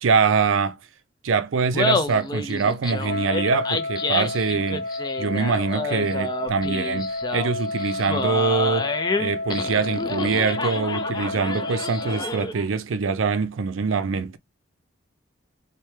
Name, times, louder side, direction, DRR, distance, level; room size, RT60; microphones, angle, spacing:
voice 1, 0.0-0.8 1.2-4.9 5.2-14.4, right 5 dB, 85° right, 0.5 m, -24 dB
Laughter, 1.6-12.6, left 3 dB, 20° left, 0.3 m, -29 dB
Wind instrument woodwind instrument, 3.0-12.4, left 2 dB, 55° left, 0.8 m, -31 dB
4.2 x 2.2 x 3.2 m
head